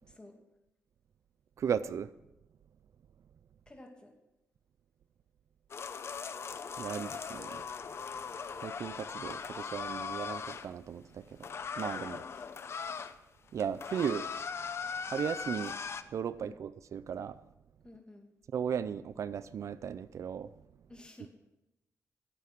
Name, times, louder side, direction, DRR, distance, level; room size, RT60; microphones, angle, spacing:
voice 1, 0.0-0.4 3.7-4.2 12.0-12.5 16.4-16.6 17.8-18.3 20.9-21.3, left 2 dB, 15° left, 2 dB, 2.4 m, -54 dB
voice 2, 1.6-2.1 6.8-7.6 8.6-11.2 11.8-12.2 13.5-14.3 15.1-15.7 16.1-17.4 18.5-20.5, right 8 dB, 65° right, 16 dB, 0.4 m, -36 dB
sound 1, 5.7-10.7 11.4-13.2 13.5-16.0, left 6 dB, 50° left, 0.7 m, -39 dB
15.0 x 8.4 x 6.0 m, 0.93 s
cardioid pair, 110°, 6 cm